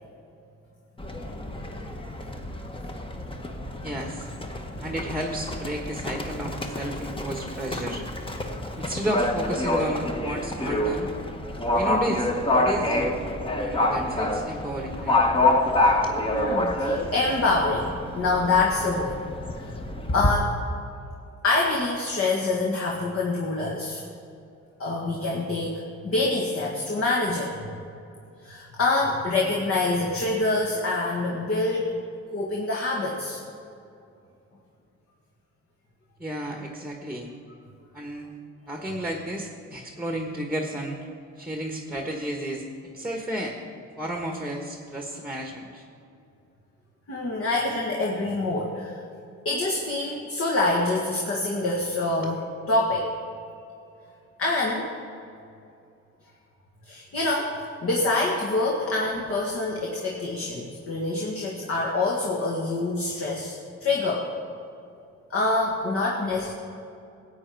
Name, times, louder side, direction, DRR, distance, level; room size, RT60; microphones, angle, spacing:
Livestock farm animals working animals, 1.0-20.3, left 1 dB, 15° left, 1.1 m, -27 dB
voice 1, 3.8-4.3 4.8-8.0 8.7-11.1 11.7-13.1 13.6-15.2 15.8-16.1 36.2-37.3 37.9-38.3 38.7-41.0 41.4-42.6 42.9-43.6 44.0-45.8 52.2-52.3, equal, 5° right, 2 dB, 1.3 m, -32 dB
voice 2, 16.3-19.2 19.6-19.7 20.1-20.6 21.4-24.0 24.8-27.5 28.4-31.8 32.3-33.4 47.1-48.9 49.5-53.1 54.4-54.9 56.9-57.6 57.8-64.3 65.3-66.5, left 2 dB, 50° left, -2 dB, 1.7 m, -26 dB
14.5 x 8.7 x 4.6 m, 2.5 s
cardioid pair, 90°, 30 cm